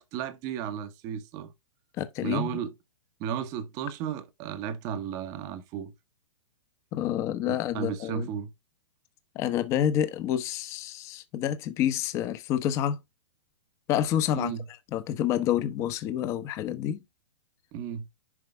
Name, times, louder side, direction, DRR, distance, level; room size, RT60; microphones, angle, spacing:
voice 1, 0.0-1.5 2.2-2.7 3.2-5.9 7.5-8.5 14.3-14.6 17.7-18.1, right 8 dB, 20° right, 1.0 m, -34 dB
voice 2, 2.0-2.5 6.9-8.3 9.3-13.0 13.9-14.5 14.9-17.0, left 10 dB, 20° left, 0.9 m, -28 dB
11.0 x 4.8 x 3.3 m
hypercardioid pair, 170°, 16 cm